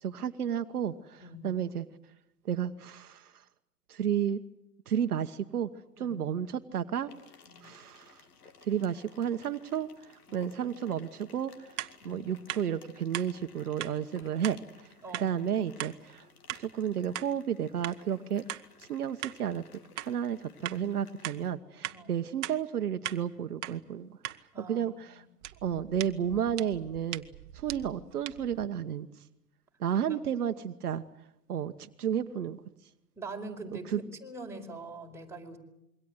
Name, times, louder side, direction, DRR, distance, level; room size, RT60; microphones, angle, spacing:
voice 1, 0.0-1.9 2.4-3.3 3.9-4.4 4.9-5.7 6.0-7.1 7.6-8.2 8.6-11.5 12.0-14.9 15.2-16.3 16.6-18.5 18.9-19.7 20.0-24.2 24.6-25.2 25.6-27.2 27.5-29.1 29.8-31.0 31.5-32.6 33.9-34.0, right 9 dB, 70° right, 9 dB, 1.3 m, -32 dB
sound 1, 7.1-21.5, left 5 dB, 70° left, 3.0 m, -57 dB
sound 2, 11.8-11.9 12.5-12.6 13.1-13.3 13.8-13.9 14.4-14.6 15.1-15.3 15.8-15.9 16.5-16.6 17.1-17.3 17.8-18.0 18.5-18.6 19.2-19.4 20.0-20.1 20.6-20.8 21.2-21.4 21.8-22.0 22.4-22.6 23.0-23.2 23.6-23.8 24.2-24.4 25.4-28.7, right 14 dB, 50° right, 1.4 m, -39 dB
voice 2, 14.2-14.6 15.0-15.4 21.9-22.1 24.5-25.0 30.1-30.2 33.2-35.6, right 2 dB, 5° right, 0 dB, 5.0 m, -44 dB
27.0 x 23.0 x 8.0 m, 0.86 s
figure-of-eight pair, 105°, 47 cm